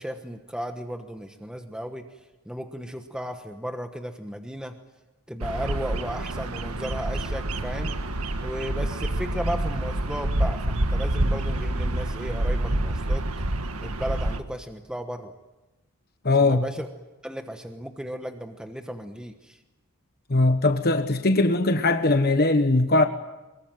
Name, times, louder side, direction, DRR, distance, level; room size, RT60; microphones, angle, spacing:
voice 1, 0.0-2.1 2.5-4.7 5.3-7.9 8.4-13.2 13.8-15.3 16.4-16.9 17.2-19.6, equal, 5° right, 1.2 m, -35 dB
Bird vocalization bird call bird song, 5.4-14.4, right 1 dB, 80° right, 1.6 m, -27 dB
voice 2, 16.2-16.7 20.3-23.1, left 2 dB, 45° left, 1.2 m, -20 dB
24.0 x 22.0 x 9.3 m
head